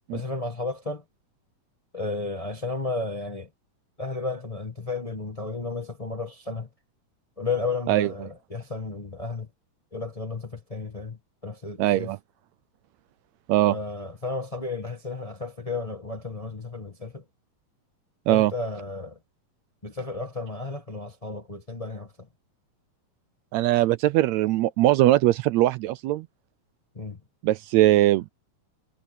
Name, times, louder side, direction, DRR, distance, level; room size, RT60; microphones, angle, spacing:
voice 1, 0.1-1.0 1.9-3.5 4.0-6.7 7.4-9.5 9.9-11.2 11.4-12.1 13.7-17.2 18.3-19.2 19.8-22.1 26.9-27.2, left 3 dB, 65° left, 0.3 m, -33 dB
voice 2, 11.8-12.2 13.5-13.8 18.3-18.5 23.5-26.3 27.4-28.3, right 15 dB, 85° right, 1.5 m, -21 dB
omnidirectional pair, 3.8 m